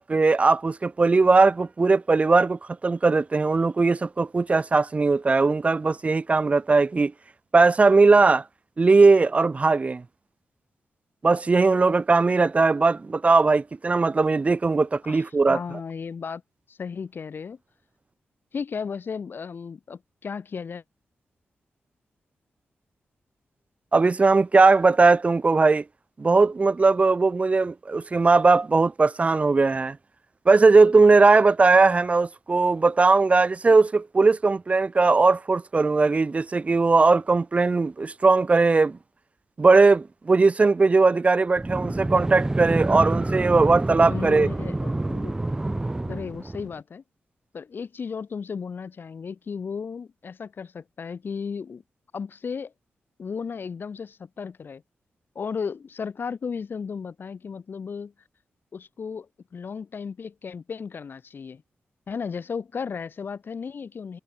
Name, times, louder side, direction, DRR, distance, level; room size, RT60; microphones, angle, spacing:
voice 1, 0.0-7.1 7.5-8.4 8.8-10.0 11.2-15.6 23.9-25.8 26.2-30.0 30.5-39.0 39.6-44.5, right 3 dB, 30° right, 1.1 m, -19 dB
voice 2, 15.1-16.4 16.7-17.6 18.5-20.8 44.1-45.4 46.1-47.0 47.5-51.8 52.1-52.7 53.2-54.8 55.3-58.1 58.7-59.3 59.5-61.6 62.1-64.2, left 6 dB, 55° left, 6.0 m, -34 dB
sound 1, 41.6-46.8, right 2 dB, 15° right, 0.9 m, -28 dB
wide cardioid pair, 120°, 4 cm